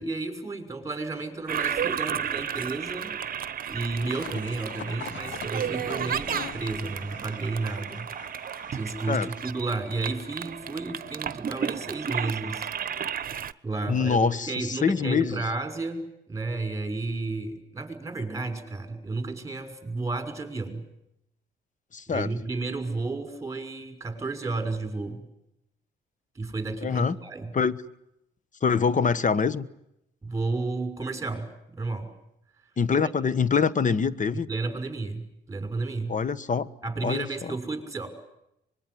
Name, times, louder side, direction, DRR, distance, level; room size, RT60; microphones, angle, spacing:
voice 1, 0.0-3.1 3.7-8.1 8.7-20.9 22.1-25.2 26.3-27.5 30.2-32.1 33.0-33.1 34.3-36.2 36.8-38.1, right 3 dB, 15° right, 8 dB, 6.4 m, -32 dB
Toilet flush, 1.5-13.5, right 8 dB, 45° right, 1.0 m, -33 dB
sound 1, 3.9-9.7, left 8 dB, 70° left, 1.7 m, -43 dB
voice 2, 13.9-15.4 21.9-22.3 26.8-27.2 27.5-27.8 28.6-29.7 32.8-34.5 36.1-36.7 37.0-37.5, left 6 dB, 40° left, 16 dB, 1.4 m, -25 dB
24.5 x 22.0 x 9.9 m, 0.81 s
cardioid pair, 90°, 20 cm